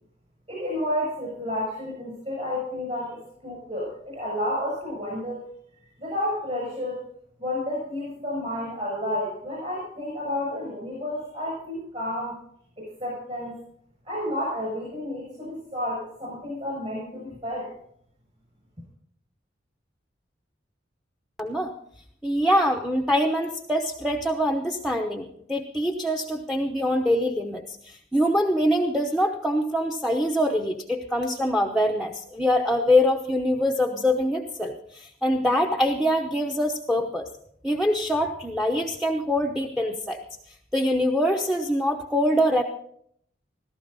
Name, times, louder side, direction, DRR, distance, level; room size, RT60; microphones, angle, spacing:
voice 1, 0.5-5.5 6.0-7.1 7.4-12.4 12.8-13.6 14.0-17.7, left 1 dB, 35° right, -3 dB, 6.5 m, -31 dB
voice 2, 21.4-21.7 22.2-37.3 37.6-40.2 40.7-42.6, equal, ahead, 4 dB, 0.8 m, -24 dB
16.0 x 13.5 x 4.1 m, 0.66 s
head